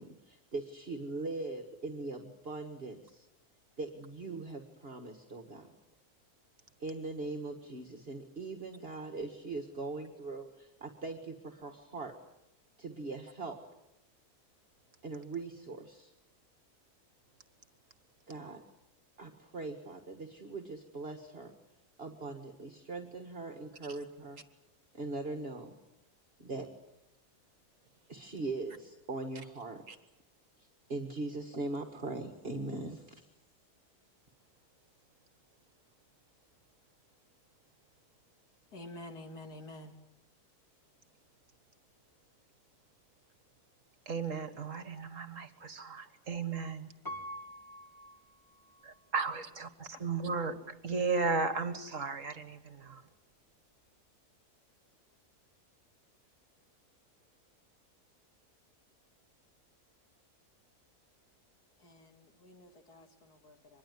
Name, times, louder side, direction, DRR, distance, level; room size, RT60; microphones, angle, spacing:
voice 1, 0.0-3.3 3.8-5.7 6.8-12.1 12.8-13.6 15.0-16.1 18.3-18.6 19.2-21.5 22.0-24.4 24.9-25.7 26.4-26.7 28.1-29.8 30.9-33.3, right 3 dB, 40° right, 4 dB, 1.9 m, -41 dB
voice 2, 38.7-40.0 49.9-50.0 61.8-63.8, left 1 dB, 80° left, 5 dB, 2.9 m, -49 dB
voice 3, 44.1-46.9 48.8-53.1, right 4 dB, 55° right, 10 dB, 1.9 m, -35 dB
Piano, 47.0-49.0 49.6-49.7, equal, 15° left, 1.9 m, -46 dB
25.0 x 21.5 x 9.5 m, 0.91 s
omnidirectional pair, 1.6 m